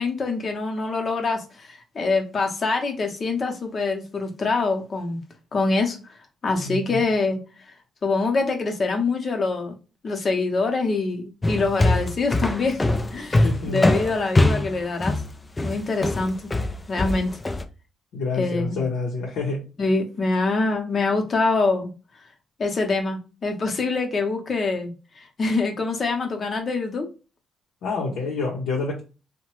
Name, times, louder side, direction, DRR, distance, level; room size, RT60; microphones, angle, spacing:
voice 1, 0.0-5.2 5.5-6.0 6.4-7.4 8.0-9.7 10.0-12.8 13.1-15.2 15.6-16.4 16.9-17.3 18.4-18.8 19.8-21.9 22.6-27.1 28.1-28.2, left 3 dB, 40° left, 3 dB, 0.8 m, -25 dB
voice 2, 6.6-7.0 13.4-14.0 18.1-19.6 27.8-29.0, left 3 dB, 80° left, -2 dB, 0.7 m, -28 dB
sound 1, 11.4-17.6, left 2 dB, 20° left, 0.4 m, -22 dB
2.8 x 2.1 x 3.0 m, 0.32 s
cardioid pair, 90°, 0 cm